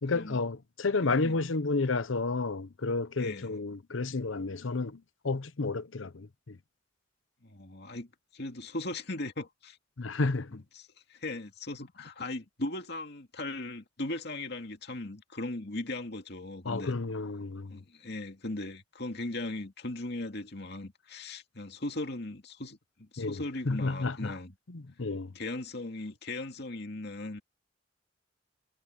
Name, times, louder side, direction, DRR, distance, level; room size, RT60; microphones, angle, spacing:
voice 1, 0.0-5.0 5.2-6.6 10.0-10.6 16.7-17.8 23.2-24.3 24.7-25.3, left 3 dB, 85° left, 0.8 m, -31 dB
voice 2, 1.0-1.4 3.2-3.5 7.4-9.8 10.5-16.9 17.7-24.5 25.3-27.4, left 2 dB, 60° left, 2.3 m, -38 dB
head